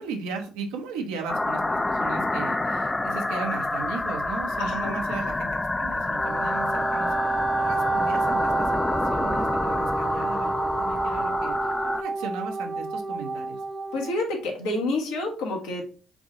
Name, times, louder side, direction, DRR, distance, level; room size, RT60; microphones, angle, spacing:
voice 1, 0.0-13.6, right 4 dB, 85° right, 3 dB, 0.9 m, -37 dB
sound 1, 1.3-12.0, left 2 dB, 20° left, 0.3 m, -28 dB
voice 2, 4.6-4.9 13.9-15.8, left 2 dB, 85° left, 0 dB, 1.3 m, -28 dB
Wind instrument woodwind instrument, 6.1-14.1, right 3 dB, 50° right, 0.6 m, -29 dB
4.7 x 2.6 x 3.7 m, 0.38 s
supercardioid pair, 60°, 0 cm